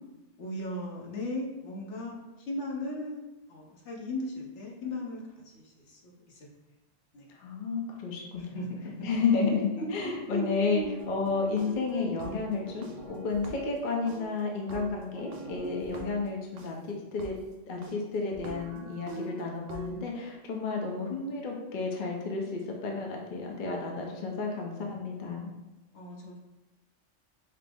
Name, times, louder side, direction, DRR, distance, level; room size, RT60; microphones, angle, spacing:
voice 1, 0.4-2.2 2.5-3.2 3.5-6.5 7.1-7.2 8.4-9.1 9.5-10.9 25.9-26.4, left 1 dB, 70° left, -2 dB, 1.2 m, -37 dB
voice 2, 7.3-8.6 9.0-17.4 17.7-25.5, left 4 dB, 50° left, 0 dB, 0.7 m, -31 dB
sound 1, 11.0-13.8 14.1-16.7 17.2-17.3 17.8-17.9 18.3-19.9, right 3 dB, 90° right, 1.0 m, -43 dB
5.9 x 2.0 x 3.4 m, 1.1 s
omnidirectional pair, 1.3 m